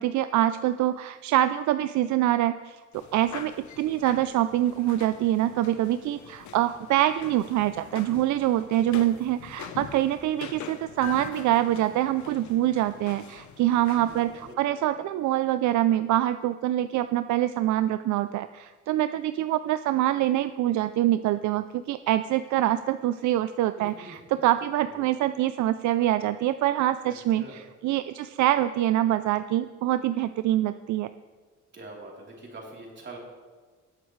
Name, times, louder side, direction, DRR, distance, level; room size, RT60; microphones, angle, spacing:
voice 1, 0.0-31.1, right 13 dB, 75° right, 12 dB, 0.4 m, -25 dB
sound 1, 2.9-14.5, left 8 dB, 70° left, 1.0 m, -44 dB
voice 2, 11.4-12.0 13.9-15.1 23.8-24.4 24.9-25.0 27.1-27.7 31.7-33.2, right 2 dB, 40° right, -2 dB, 3.4 m, -45 dB
19.0 x 7.9 x 3.2 m, 1.4 s
cardioid pair, 90°, 30 cm